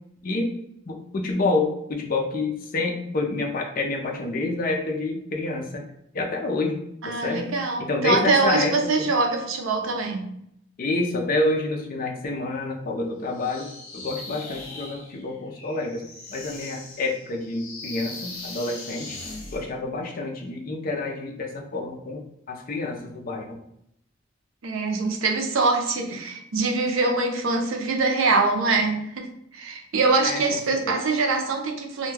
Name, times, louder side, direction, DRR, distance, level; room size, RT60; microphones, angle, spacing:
voice 1, 0.9-5.8 6.1-6.8 7.1-7.5 7.8-8.8 10.8-13.7 13.9-16.0 16.3-19.2 19.5-22.2 22.5-23.6 30.2-30.4 30.8-30.9, left 2 dB, 45° left, 2 dB, 0.4 m, -28 dB
voice 2, 7.0-10.3 24.6-29.3 29.5-32.1, right 3 dB, 75° right, 3 dB, 0.5 m, -23 dB
sound 1, 13.3-19.7, left 2 dB, 80° left, 0.7 m, -40 dB
2.2 x 2.2 x 3.1 m, 0.76 s
head